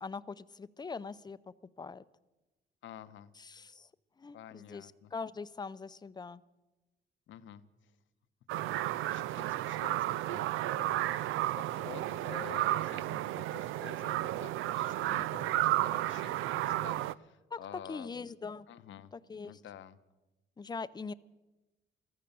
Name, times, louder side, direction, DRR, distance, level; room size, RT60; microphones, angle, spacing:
voice 1, 0.0-1.4 1.8-2.0 3.5-3.9 4.2-4.9 5.1-6.4 17.5-17.6 17.9-18.7 19.3-19.5 20.6-21.1, left 4 dB, 20° left, 15 dB, 0.6 m, -41 dB
voice 2, 2.8-3.3 4.3-5.1 7.3-7.9 8.6-10.5 10.7-18.3 18.7-19.1 19.4-20.0, left 10 dB, 75° left, 12 dB, 0.9 m, -50 dB
sound 1, 8.5-17.1, right 14 dB, 90° right, 0.4 m, -32 dB
14.5 x 13.5 x 6.9 m, 1.1 s
cardioid pair, 90°, 20 cm